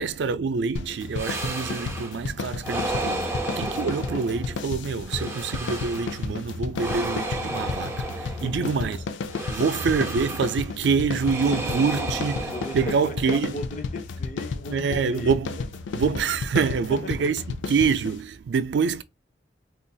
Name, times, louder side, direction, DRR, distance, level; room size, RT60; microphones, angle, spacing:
voice 1, 0.0-9.0 9.4-13.5 14.7-15.6 15.9-19.0, right 5 dB, 75° right, 0.4 m, -26 dB
sound 1, 0.8-18.2, left 4 dB, 90° left, 0.4 m, -33 dB
sound 2, 1.1-2.2 2.6-4.6 5.1-6.3 6.7-8.7 9.3-10.7 11.2-13.3, right 2 dB, 15° right, 0.5 m, -33 dB
voice 2, 8.2-9.6 12.0-16.3 16.6-17.3, left 2 dB, 40° left, 0.5 m, -39 dB
3.9 x 2.4 x 2.3 m
head